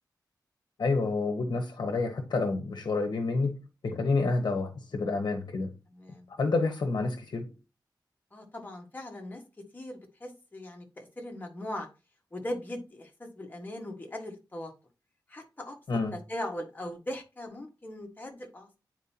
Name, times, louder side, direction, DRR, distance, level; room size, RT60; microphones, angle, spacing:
voice 1, 0.8-5.7 6.4-7.5 15.9-16.1, left 3 dB, 70° left, 1.1 m, -29 dB
voice 2, 5.9-6.3 8.3-11.9 12.3-14.7 15.3-15.8 16.1-18.8, left 1 dB, 25° left, 1.6 m, -39 dB
9.1 x 4.5 x 2.8 m
wide cardioid pair, 135°, 8 cm